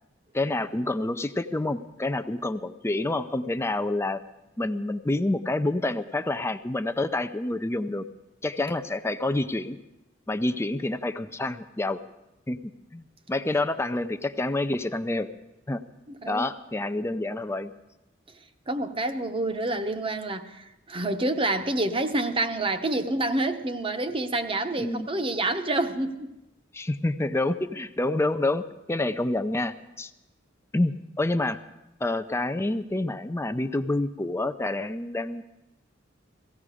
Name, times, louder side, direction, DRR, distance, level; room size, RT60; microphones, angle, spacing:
voice 1, 0.3-4.2 4.6-8.1 8.4-9.8 10.3-12.0 12.5-12.6 12.9-13.0 13.3-15.3 15.7-15.8 16.3-17.7 24.8-25.1 26.7-30.1 30.7-31.6 32.0-35.4, left 2 dB, 15° left, 0.4 m, -28 dB
voice 2, 18.7-26.3, right 2 dB, 30° right, 0.9 m, -28 dB
17.5 x 16.0 x 4.9 m
head